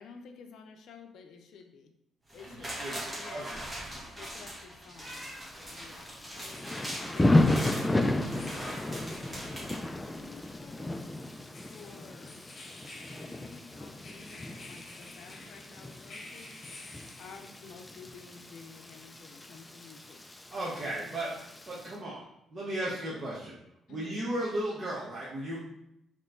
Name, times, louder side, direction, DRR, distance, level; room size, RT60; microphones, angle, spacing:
voice 1, 0.0-1.9 2.3-3.7 4.2-8.8 9.6-12.5 13.1-16.6 16.9-20.2 20.5-21.5 22.7-23.2 23.9-24.3, left 5 dB, 75° left, 6 dB, 0.5 m, -52 dB
sound 1, 2.3-10.5 10.8-10.9, equal, 15° right, 1.3 m, -41 dB
voice 2, 2.5-3.6 20.5-21.4 21.7-22.3 22.5-23.5 23.9-25.6, right 1 dB, 40° right, -7 dB, 1.0 m, -35 dB
Thunder / Rain, 5.0-21.9, left 1 dB, 15° left, 0.4 m, -33 dB
sound 2, 6.5-17.9, left 2 dB, 50° left, 1.0 m, -52 dB
4.4 x 3.1 x 3.7 m, 0.80 s
cardioid pair, 90°, 0 cm